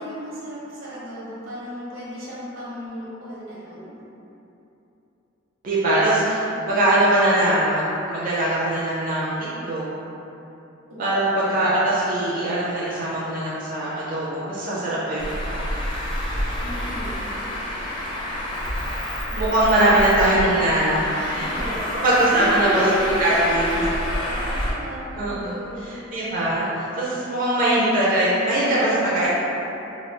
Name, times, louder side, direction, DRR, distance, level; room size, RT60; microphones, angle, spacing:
voice 1, 0.0-4.0 6.5-6.9 10.9-11.6 16.6-17.2 19.3-19.5 20.2-20.4 21.1-26.0, equal, 80° right, -7 dB, 0.8 m, -33 dB
voice 2, 5.6-9.8 11.0-15.6 19.4-21.5 22.0-22.8 23.2-23.6 25.2-25.5 26.1-29.3, right 1 dB, 45° right, -8 dB, 0.4 m, -21 dB
Traffic noise roadway noise, 15.2-24.7, left 1 dB, 25° left, 0.5 m, -28 dB
3.0 x 2.2 x 3.2 m, 3.0 s
head